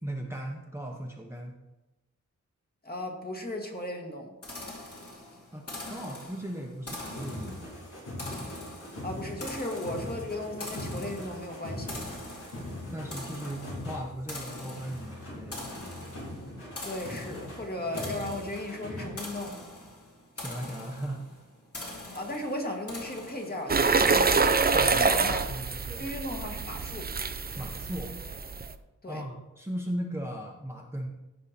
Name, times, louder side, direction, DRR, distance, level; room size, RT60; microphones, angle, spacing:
voice 1, 0.0-1.6 5.5-7.6 12.9-15.7 20.4-21.4 24.7-26.1 27.6-28.2 29.1-31.1, right 1 dB, 10° right, -1 dB, 1.0 m, -37 dB
voice 2, 2.8-4.3 9.0-12.0 16.8-19.6 22.1-25.4 26.0-27.1 29.0-29.2, left 1 dB, 30° left, 2 dB, 1.8 m, -36 dB
sound 1, 4.4-23.8, left 1 dB, 50° left, 2.6 m, -43 dB
sound 2, 7.0-14.2 14.5-19.1, left 1 dB, 90° left, 3.7 m, -41 dB
sound 3, 23.7-28.7, right 4 dB, 30° right, 0.5 m, -26 dB
15.0 x 5.6 x 4.2 m, 1.0 s
wide cardioid pair, 115°, 31 cm